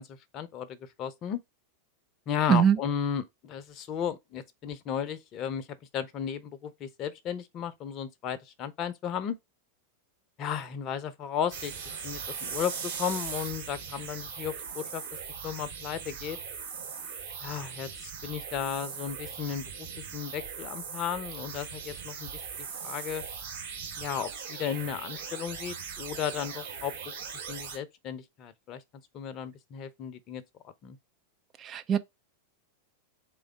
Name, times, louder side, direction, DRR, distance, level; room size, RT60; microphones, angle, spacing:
voice 1, 0.0-1.4 2.3-5.6 5.9-9.4 10.4-11.7 12.0-15.0 15.4-16.4 17.4-22.3 22.8-23.2 24.0-27.1 27.5-28.8 29.1-30.4 30.8-31.0, left 8 dB, 35° left, 0.7 m, -34 dB
voice 2, 2.5-2.8 31.6-32.0, right 8 dB, 25° right, 0.5 m, -22 dB
sound 1, 11.5-27.8, right 6 dB, 60° right, 2.6 m, -39 dB
3.9 x 3.4 x 3.4 m
figure-of-eight pair, 90°, 0 cm